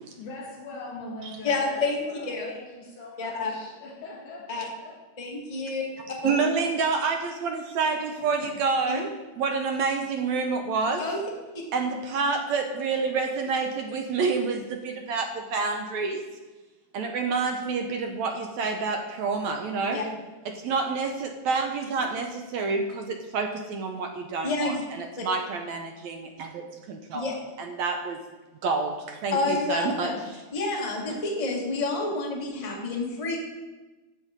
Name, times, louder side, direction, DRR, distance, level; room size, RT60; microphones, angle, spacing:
voice 1, 0.2-5.0, left 2 dB, 75° left, -3 dB, 4.5 m, -42 dB
voice 2, 1.4-2.5 3.2-3.5 4.5-4.6 5.2-5.8 6.2-6.4 8.9-9.0 11.0-11.2 19.9-20.0 24.4-24.8 27.1-27.3 29.3-30.2 30.5-33.4, left 3 dB, 15° left, -2 dB, 1.4 m, -29 dB
voice 3, 6.2-11.0 11.7-16.2 16.9-20.0 20.5-28.2 28.6-30.4 31.1-31.2, right 4 dB, 70° right, 4 dB, 1.9 m, -28 dB
14.5 x 6.2 x 5.2 m, 1.2 s
omnidirectional pair, 3.7 m